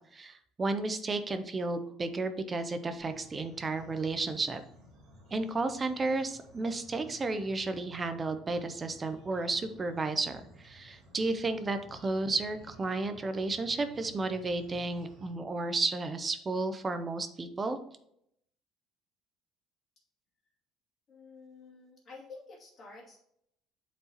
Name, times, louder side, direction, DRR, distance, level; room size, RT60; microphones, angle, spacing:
voice 1, 0.1-4.6 5.3-17.8, right 3 dB, 15° right, 9 dB, 0.5 m, -32 dB
sound 1, 3.0-15.3, equal, 35° right, 1.9 m, -56 dB
voice 2, 21.1-23.2, left 3 dB, 25° left, -4 dB, 2.4 m, -50 dB
8.1 x 4.7 x 2.9 m, 0.73 s
cardioid pair, 175°, 0 cm